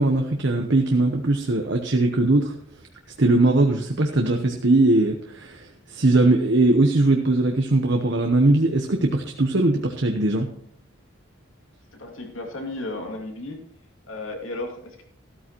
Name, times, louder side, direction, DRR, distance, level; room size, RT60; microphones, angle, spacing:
voice 1, 0.0-2.6 3.2-10.5, right 2 dB, 60° right, 3 dB, 1.0 m, -20 dB
voice 2, 11.9-13.6 14.1-15.0, left 2 dB, 75° left, 2 dB, 2.6 m, -34 dB
14.0 x 12.5 x 3.1 m, 0.66 s
head